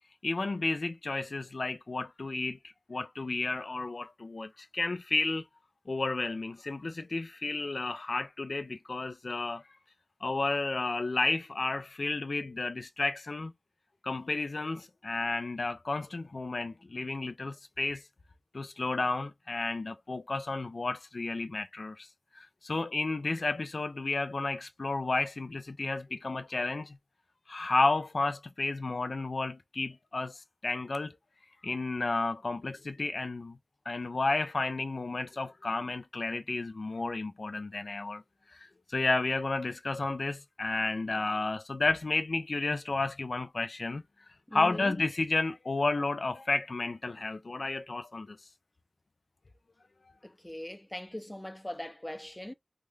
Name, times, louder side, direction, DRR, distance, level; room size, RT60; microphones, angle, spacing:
voice 1, 0.2-2.6 2.9-5.5 5.9-9.6 10.2-13.5 14.0-18.0 18.5-22.1 22.6-27.0 27.5-31.1 31.6-33.6 33.9-38.2 38.5-38.6 38.9-44.0 44.5-48.4, left 3 dB, 85° left, 0.4 m, -32 dB
voice 2, 44.5-45.0 50.2-52.5, left 1 dB, 15° left, 0.5 m, -40 dB
3.4 x 2.3 x 3.1 m
wide cardioid pair, 60°, 0 cm